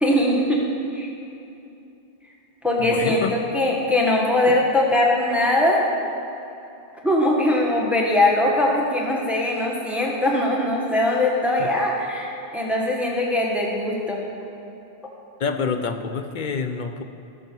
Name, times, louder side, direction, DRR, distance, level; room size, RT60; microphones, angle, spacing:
voice 1, 0.0-0.6 0.9-1.1 2.6-5.8 7.0-14.2, left 1 dB, ahead, -2 dB, 1.4 m, -21 dB
voice 2, 2.8-3.3 4.5-4.6 11.6-11.7 15.4-17.0, left 5 dB, 50° left, 8 dB, 0.7 m, -27 dB
18.0 x 6.8 x 4.6 m, 2.8 s
omnidirectional pair, 1.1 m